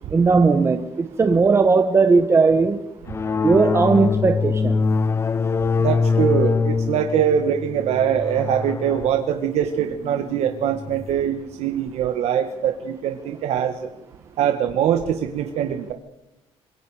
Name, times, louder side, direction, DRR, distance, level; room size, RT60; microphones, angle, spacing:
voice 1, 0.1-2.8 3.4-4.8, right 4 dB, 25° right, 7 dB, 1.3 m, -17 dB
sound 1, 3.1-11.2, left 4 dB, 25° left, 0.7 m, -24 dB
voice 2, 5.8-13.9 14.4-15.9, right 9 dB, 85° right, 6 dB, 1.6 m, -23 dB
26.5 x 22.5 x 5.0 m, 0.93 s
cardioid pair, 160°, 11 cm